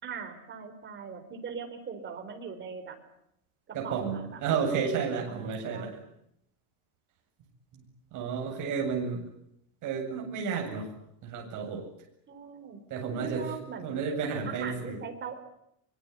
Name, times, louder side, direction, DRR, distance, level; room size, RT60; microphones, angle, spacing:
voice 1, 0.0-3.0 3.7-4.9 5.2-6.0 12.3-12.8 13.2-14.0 14.5-15.4, right 6 dB, 20° right, 6 dB, 4.1 m, -41 dB
voice 2, 3.7-5.9 7.7-7.8 8.1-9.2 9.8-10.9 11.2-11.8 12.9-13.4 13.8-15.0, right 6 dB, 40° right, 1 dB, 7.9 m, -31 dB
24.5 x 24.0 x 9.7 m, 0.76 s
cardioid pair, 180°, 48 cm